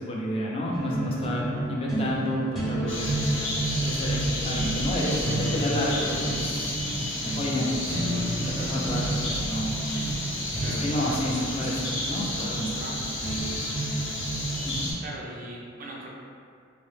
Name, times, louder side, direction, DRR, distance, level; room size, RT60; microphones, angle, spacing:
voice 1, 0.0-6.8 7.3-8.1 8.4-9.7 10.7-12.6 14.6-14.9, left 1 dB, 30° left, -4 dB, 0.4 m, -30 dB
sound 1, 0.7-14.8, right 2 dB, ahead, 0.7 m, -31 dB
sound 2, 2.9-14.9, left 1 dB, 70° left, 0.7 m, -32 dB
voice 2, 10.4-13.1 15.0-16.1, right 1 dB, 45° right, -3 dB, 0.3 m, -41 dB
2.9 x 2.0 x 3.1 m, 2.3 s
head